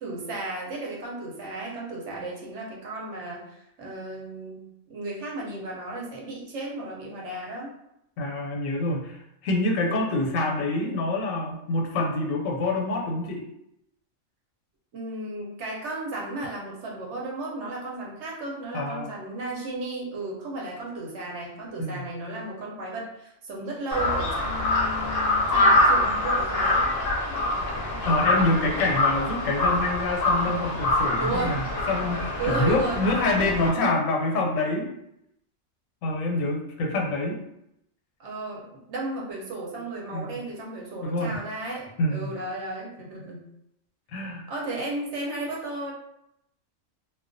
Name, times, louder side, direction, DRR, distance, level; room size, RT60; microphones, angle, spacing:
voice 1, 0.0-4.6 4.9-7.7 9.8-10.1 14.9-26.8 31.2-31.6 32.4-33.0 38.2-43.5 44.5-45.9, right 2 dB, 65° right, -3 dB, 0.9 m, -34 dB
voice 2, 8.2-13.4 18.7-19.1 21.8-22.1 28.1-34.9 36.0-37.4 40.1-40.4 41.0-41.4 42.0-42.4 44.1-44.4, left 2 dB, 85° left, 1 dB, 1.0 m, -26 dB
Crow, 23.9-33.7, left 2 dB, 60° left, 0.7 m, -24 dB
2.3 x 2.1 x 2.5 m, 0.80 s
omnidirectional pair, 1.3 m